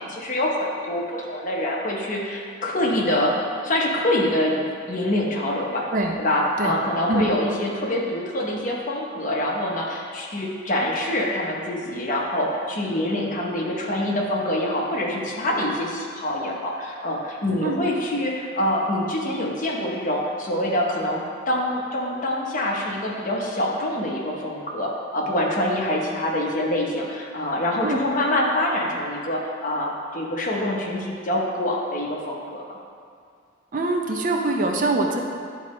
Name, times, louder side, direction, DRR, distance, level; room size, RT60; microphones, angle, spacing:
voice 1, 0.0-3.4 3.6-5.9 6.2-32.8, left 1 dB, 40° left, -2 dB, 0.9 m, -25 dB
voice 2, 33.7-35.2, right 2 dB, 40° right, 2 dB, 0.5 m, -23 dB
10.0 x 4.0 x 3.1 m, 2.2 s
head